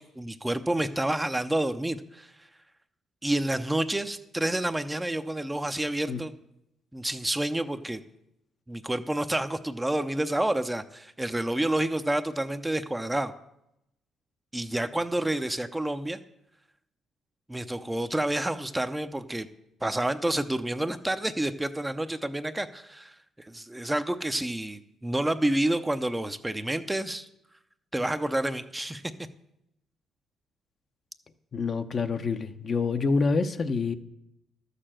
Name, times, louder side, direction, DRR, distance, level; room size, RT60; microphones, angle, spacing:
voice 1, 0.0-2.5 3.2-6.3 6.9-8.0 8.7-13.3 14.5-16.2 17.5-19.5 19.8-27.3 27.9-29.0, right 1 dB, 10° right, 9 dB, 0.6 m, -29 dB
voice 2, 31.5-33.9, left 4 dB, 45° left, 8 dB, 0.8 m, -27 dB
12.5 x 6.7 x 7.5 m, 0.83 s
cardioid pair, 90°, 0 cm